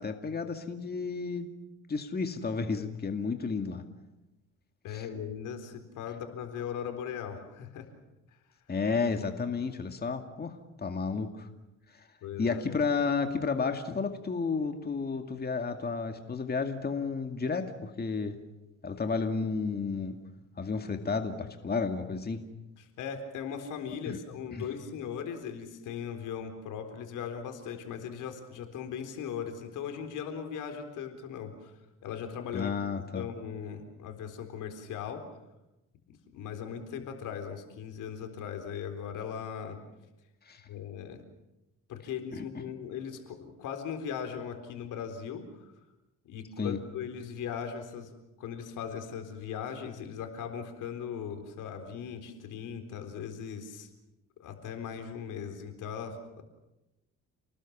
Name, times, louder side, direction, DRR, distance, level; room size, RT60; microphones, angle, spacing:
voice 1, 0.0-1.5 1.9-3.8 4.9-5.1 8.7-11.5 12.4-18.4 18.8-20.2 20.6-22.4 24.1-24.2 24.5-24.7 32.5-33.3 40.5-40.6 42.3-42.4 46.6-46.8, left 4 dB, 30° left, 6 dB, 2.2 m, -32 dB
voice 2, 4.8-7.9 12.2-12.6 22.8-31.7 32.0-32.8 33.1-35.2 36.1-39.8 40.6-41.2 41.9-45.7 46.3-48.1 48.4-53.9 54.4-56.4, left 7 dB, 85° left, 6 dB, 4.0 m, -39 dB
29.0 x 19.5 x 7.3 m, 0.96 s
cardioid pair, 90°, 30 cm